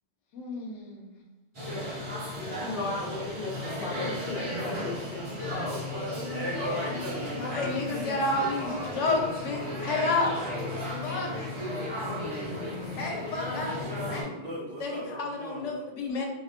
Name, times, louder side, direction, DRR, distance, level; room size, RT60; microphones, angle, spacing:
voice 1, 0.3-1.1 7.3-10.5 11.0-11.3 12.9-13.8 14.1-14.3 14.8-16.3, left 3 dB, 85° left, 1 dB, 0.9 m, -30 dB
sound 1, 1.5-14.2, left 1 dB, 30° right, 0.9 m, -34 dB
voice 2, 2.3-6.3 12.1-13.1, left 2 dB, 60° left, -3 dB, 0.6 m, -37 dB
voice 3, 5.9-7.8 14.3-15.8, right 1 dB, 65° right, -7 dB, 1.3 m, -37 dB
3.1 x 2.1 x 2.8 m, 1.1 s
omnidirectional pair, 1.2 m